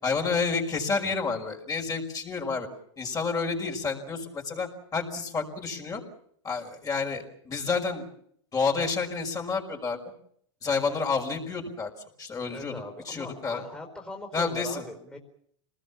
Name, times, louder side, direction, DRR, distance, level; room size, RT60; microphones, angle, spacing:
voice 1, 0.0-2.7 3.0-6.0 6.4-8.1 8.5-10.0 10.6-11.9 12.2-12.7 13.1-13.6 14.3-14.8, left 4 dB, 20° left, 2 dB, 5.6 m, -29 dB
voice 2, 12.5-15.2, left 1 dB, 5° left, 0 dB, 4.7 m, -40 dB
27.0 x 20.0 x 7.3 m, 0.67 s
hypercardioid pair, 110°, 16 cm